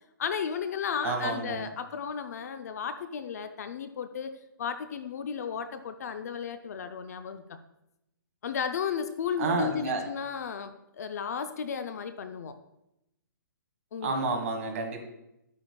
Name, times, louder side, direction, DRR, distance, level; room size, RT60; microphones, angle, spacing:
voice 1, 0.2-7.6 8.4-12.6 13.9-14.1, left 7 dB, 45° left, 9 dB, 0.5 m, -34 dB
voice 2, 1.0-1.7 9.4-10.0 14.0-15.0, right 3 dB, 35° right, 4 dB, 1.4 m, -30 dB
10.0 x 8.8 x 2.2 m, 0.87 s
hypercardioid pair, 160°, 12 cm